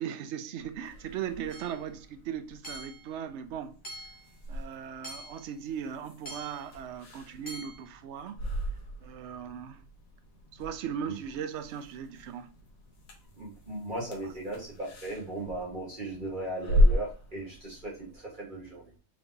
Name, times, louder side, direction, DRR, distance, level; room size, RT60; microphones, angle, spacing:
voice 1, 0.0-3.8 4.5-8.4 9.0-9.8 10.5-12.5 14.2-14.3, right 8 dB, 70° right, 0.7 m, -38 dB
sound 1, 0.6-18.2, left 1 dB, 65° left, 1.4 m, -35 dB
Hammer / Chink clink, 1.5-1.8 2.6-3.1 3.8-4.3 5.0-5.5 6.3-6.7 7.5-7.8, right 1 dB, 35° left, 1.3 m, -44 dB
voice 2, 13.4-18.9, right 1 dB, 35° right, 1.7 m, -37 dB
4.7 x 3.4 x 2.7 m
omnidirectional pair, 1.6 m